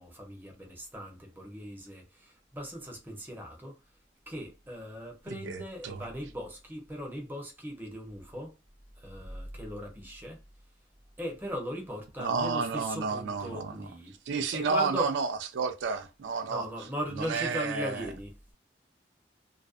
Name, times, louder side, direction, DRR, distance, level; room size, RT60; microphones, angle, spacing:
voice 1, 0.0-3.7 4.3-8.5 9.0-10.4 11.2-14.1 14.5-15.1 16.5-18.3, equal, 10° right, 0.7 m, -38 dB
voice 2, 5.3-6.1 12.2-13.7 14.3-16.7 17.2-18.1, right 5 dB, 90° right, 0.4 m, -31 dB
2.4 x 2.1 x 2.4 m
head